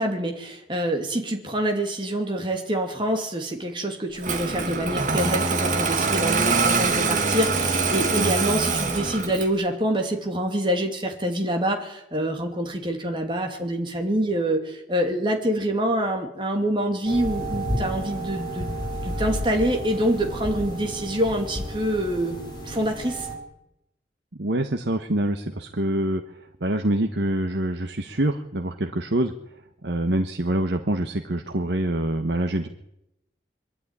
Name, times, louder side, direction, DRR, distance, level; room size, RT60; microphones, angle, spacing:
voice 1, 0.0-22.4 22.7-23.3, right 1 dB, 25° right, 2 dB, 2.6 m, -26 dB
Engine starting, 4.2-9.6, right 4 dB, 45° right, 2.0 m, -24 dB
sound 1, 17.0-23.4, right 1 dB, 25° left, 4.7 m, -31 dB
voice 2, 24.4-26.2 26.6-29.3 29.8-32.7, right 1 dB, 80° right, 6 dB, 1.2 m, -25 dB
23.5 x 11.5 x 9.8 m, 0.84 s
head